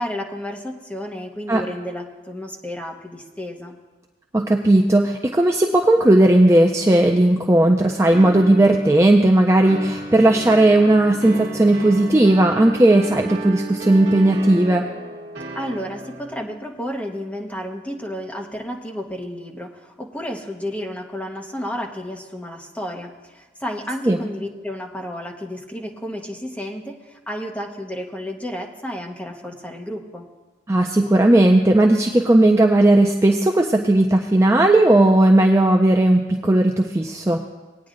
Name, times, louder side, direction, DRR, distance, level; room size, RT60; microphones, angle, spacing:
voice 1, 0.0-3.8 15.5-30.3, equal, 10° left, 1 dB, 0.9 m, -32 dB
voice 2, 4.3-14.9 24.1-24.2 30.7-37.5, right 1 dB, 15° right, 2 dB, 0.4 m, -16 dB
sound 1, 8.1-16.4, right 2 dB, 65° right, 1.2 m, -34 dB
19.0 x 9.4 x 2.5 m, 1.2 s
head